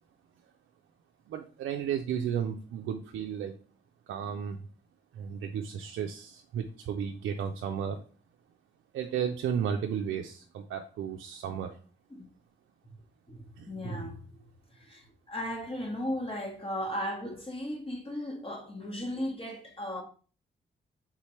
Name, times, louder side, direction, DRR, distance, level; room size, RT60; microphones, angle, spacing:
voice 1, 1.3-3.6 4.1-4.7 5.1-8.0 8.9-11.8 13.5-13.7, right 8 dB, 80° right, 0.4 m, -33 dB
voice 2, 13.3-14.4 14.7-20.0, equal, 25° left, 1.1 m, -36 dB
4.3 x 3.6 x 3.1 m
supercardioid pair, 50°, 20 cm